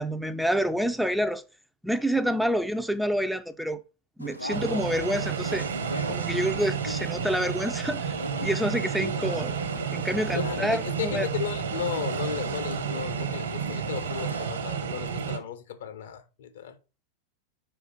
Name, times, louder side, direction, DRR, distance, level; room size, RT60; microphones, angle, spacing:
voice 1, 0.0-1.4 1.8-3.8 4.2-5.7 6.1-9.5 9.9-11.3, equal, ahead, 0.5 m, -28 dB
sound 1, 4.2-14.4, left 1 dB, 90° left, 0.7 m, -39 dB
sound 2, 4.5-15.4, right 7 dB, 65° right, 1.2 m, -31 dB
voice 2, 10.3-16.8, left 9 dB, 60° left, 0.9 m, -35 dB
5.1 x 4.5 x 5.6 m
figure-of-eight pair, 90°, 0 cm